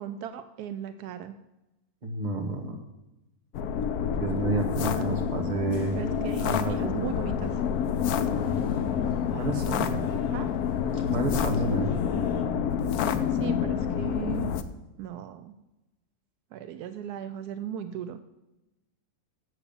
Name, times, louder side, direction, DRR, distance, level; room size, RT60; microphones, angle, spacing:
voice 1, 0.0-1.4 5.9-7.5 10.3-10.5 13.3-14.6 15.0-15.6 16.5-18.2, right 9 dB, 80° right, 11 dB, 1.1 m, -37 dB
voice 2, 2.0-2.8 4.2-5.9 6.4-6.9 9.3-10.1 10.9-11.9, right 2 dB, 30° right, 2 dB, 1.5 m, -30 dB
sound 1, 3.5-14.6, left 8 dB, 75° left, 1.1 m, -28 dB
sound 2, 4.7-12.4, left 1 dB, 40° left, 1.5 m, -43 dB
8.0 x 7.1 x 6.9 m, 0.97 s
omnidirectional pair, 1.6 m